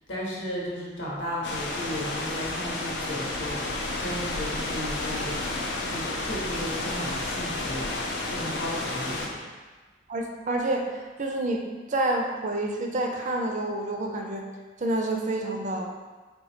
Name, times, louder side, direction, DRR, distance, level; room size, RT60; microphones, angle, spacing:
voice 1, 0.1-3.6 4.0-5.4 5.9-7.9 8.3-9.4, equal, 85° left, -5 dB, 1.1 m, -34 dB
sound 1, 1.4-9.3, left 2 dB, 65° left, 0.5 m, -31 dB
voice 2, 10.1-14.5 14.8-15.9, right 2 dB, 40° right, 2 dB, 0.4 m, -28 dB
3.9 x 2.3 x 4.2 m, 1.3 s
head